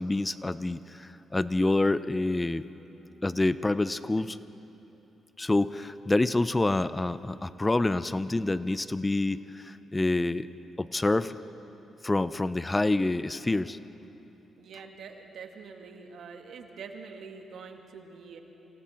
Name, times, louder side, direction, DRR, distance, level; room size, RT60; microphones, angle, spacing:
voice 1, 0.0-2.6 3.2-4.4 5.4-10.5 10.8-11.3 12.0-13.8, left 2 dB, 20° left, 14 dB, 0.7 m, -27 dB
voice 2, 14.6-18.4, right 5 dB, 70° right, 4 dB, 2.1 m, -45 dB
28.0 x 26.5 x 4.5 m, 3.0 s
supercardioid pair, 50°, 0 cm